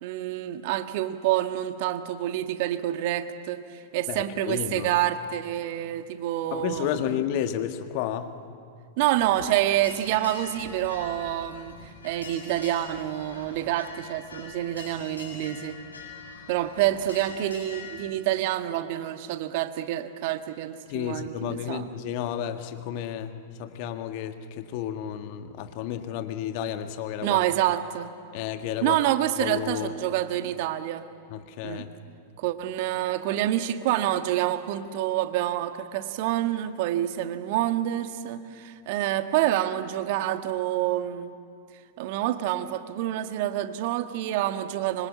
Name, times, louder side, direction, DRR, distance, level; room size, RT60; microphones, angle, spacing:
voice 1, 0.0-7.1 9.0-11.8 12.0-15.8 16.5-21.9 27.2-28.1 28.8-31.0 31.6-31.9 32.4-41.3 42.0-45.1, right 13 dB, 55° right, 9 dB, 1.5 m, -27 dB
voice 2, 4.1-4.9 6.5-8.3 20.9-27.4 28.3-29.0 29.4-29.9 31.3-31.9, left 10 dB, 50° left, 7 dB, 1.8 m, -32 dB
sound 1, 9.1-18.1, left 5 dB, 80° left, 7.5 m, -44 dB
25.5 x 25.5 x 8.6 m, 2.3 s
figure-of-eight pair, 95°, 0 cm